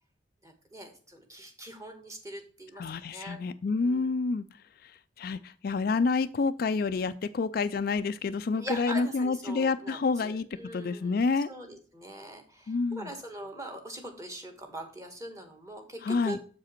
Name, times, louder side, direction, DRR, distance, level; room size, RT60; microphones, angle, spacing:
voice 1, 0.4-2.8 3.1-3.4 3.8-4.1 8.6-11.2 11.5-16.4, right 1 dB, 15° right, 5 dB, 1.4 m, -42 dB
voice 2, 2.8-10.5 10.7-11.5 12.7-13.1 16.0-16.4, left 4 dB, 50° left, 12 dB, 0.3 m, -29 dB
7.5 x 4.9 x 4.4 m, 0.42 s
head